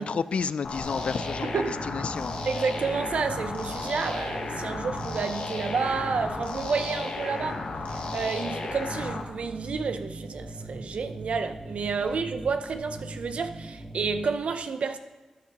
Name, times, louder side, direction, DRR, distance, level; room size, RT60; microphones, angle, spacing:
voice 1, 0.0-2.3, left 5 dB, 70° left, 0.3 m, -31 dB
sound 1, 0.6-9.2, left 3 dB, 90° left, 1.1 m, -34 dB
sound 2, 0.8-14.3, right 1 dB, 5° right, 1.4 m, -40 dB
voice 2, 2.5-15.0, right 5 dB, 75° right, 0.6 m, -30 dB
13.0 x 10.5 x 2.9 m
wide cardioid pair, 100°, 2 cm